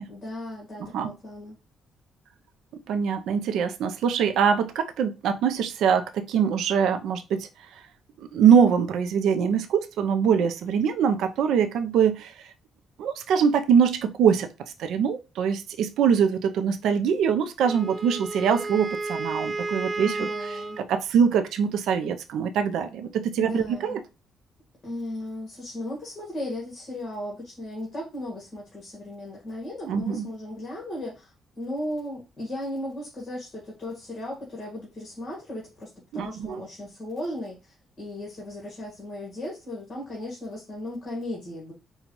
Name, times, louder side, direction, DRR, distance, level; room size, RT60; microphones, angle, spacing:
voice 1, 0.1-1.6 20.0-20.8 23.4-24.0 24.8-41.7, left 1 dB, 40° left, 1.6 m, -36 dB
voice 2, 2.9-7.5 8.3-12.5 13.0-14.5 14.8-24.0 29.9-30.3 36.1-36.6, right 7 dB, 80° right, 0.5 m, -23 dB
Wind instrument woodwind instrument, 17.6-20.9, right 3 dB, 30° right, 0.4 m, -32 dB
5.3 x 2.3 x 3.0 m
cardioid pair, 90°, 0 cm